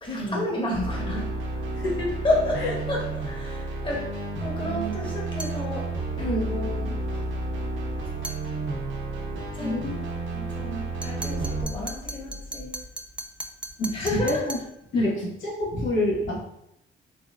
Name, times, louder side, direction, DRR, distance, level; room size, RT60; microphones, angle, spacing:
voice 1, 0.0-1.4 2.2-4.1 4.4-5.9 6.2-7.2 9.5-9.9 10.3-12.8 13.9-14.4, left 1 dB, 25° left, -3 dB, 1.3 m, -30 dB
sound 1, 0.7-11.6, right 2 dB, 75° right, 0.9 m, -31 dB
voice 2, 1.7-2.1 2.5-2.7 4.6-4.9 9.6-10.0 13.8-14.6 14.9-16.4, left 1 dB, 75° left, -4 dB, 1.4 m, -28 dB
sound 2, 5.4-5.7 8.2-8.5 11.0-14.7, right 2 dB, 5° right, 0.3 m, -38 dB
4.1 x 2.7 x 2.4 m, 0.79 s
cardioid pair, 90°, 20 cm